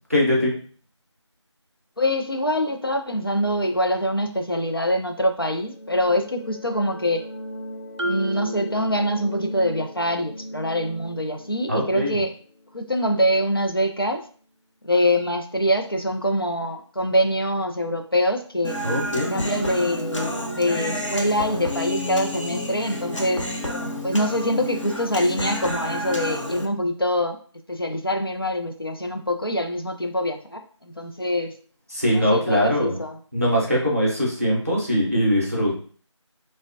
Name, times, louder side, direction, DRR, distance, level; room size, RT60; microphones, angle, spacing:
voice 1, 0.1-0.5 11.7-12.2 18.8-19.4 31.9-33.0 33.3-35.8, equal, 30° right, -4 dB, 0.7 m, -22 dB
voice 2, 2.0-7.2 8.0-12.3 12.7-14.2 14.8-18.8 19.3-23.4 24.0-27.4 27.7-31.5 32.1-33.2, equal, 50° left, 4 dB, 0.4 m, -24 dB
sound 1, 5.3-13.8, equal, 30° left, 1.1 m, -38 dB
Marimba xylophone, 8.0-9.7, right 2 dB, 75° right, 0.5 m, -32 dB
Human voice, 18.6-26.7, left 1 dB, 85° left, 0.8 m, -30 dB
3.2 x 2.1 x 2.6 m, 0.43 s
figure-of-eight pair, 180°, 16 cm